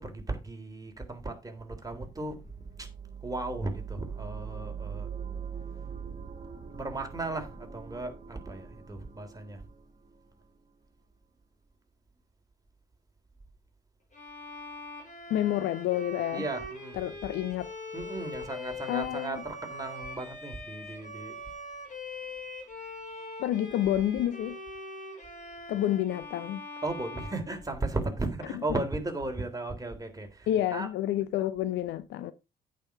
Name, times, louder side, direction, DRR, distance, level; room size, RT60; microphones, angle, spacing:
voice 1, 0.0-2.5 2.8-2.9 3.2-5.1 6.7-9.6 16.3-17.0 17.9-21.3 26.8-30.9, right 2 dB, 15° right, 3.4 m, -36 dB
sound 1, 1.7-10.6, right 7 dB, 35° right, 2.1 m, -42 dB
Bowed string instrument, 14.1-28.2, left 2 dB, 35° left, 5.0 m, -42 dB
voice 2, 15.3-16.4 16.9-17.7 18.9-19.4 23.4-24.6 25.7-26.6 28.5-28.6 30.5-32.3, left 12 dB, 65° left, 0.8 m, -29 dB
8.9 x 6.9 x 4.7 m
hypercardioid pair, 55°, 21 cm